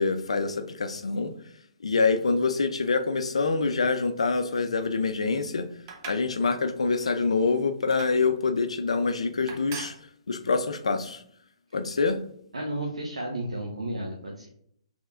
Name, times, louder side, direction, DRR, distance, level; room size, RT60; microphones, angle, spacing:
voice 1, 0.0-1.3 1.8-5.7 6.1-9.9 10.3-11.2 11.7-12.2, left 4 dB, 75° left, 9 dB, 0.5 m, -25 dB
sound 1, 5.9-6.3 6.8-7.1 7.9-8.2 8.9-9.1 9.5-10.0, right 5 dB, 35° right, 0.9 m, -40 dB
voice 2, 12.5-14.5, right 1 dB, 80° right, -2 dB, 0.8 m, -32 dB
6.3 x 3.4 x 2.5 m, 0.68 s
figure-of-eight pair, 125°, 3 cm